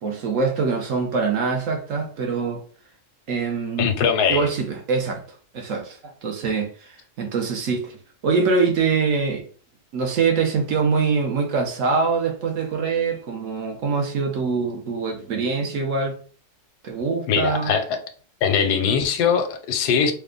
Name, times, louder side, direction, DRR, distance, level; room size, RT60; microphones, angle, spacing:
voice 1, 0.0-2.6 3.3-3.9 4.3-5.2 5.5-8.0 8.2-9.5 9.9-16.2 16.8-17.7, right 4 dB, 65° right, 0.9 m, -24 dB
voice 2, 3.8-4.5 17.3-17.8 18.4-20.1, left 7 dB, 85° left, 1.2 m, -21 dB
3.3 x 2.1 x 3.6 m
omnidirectional pair, 1.7 m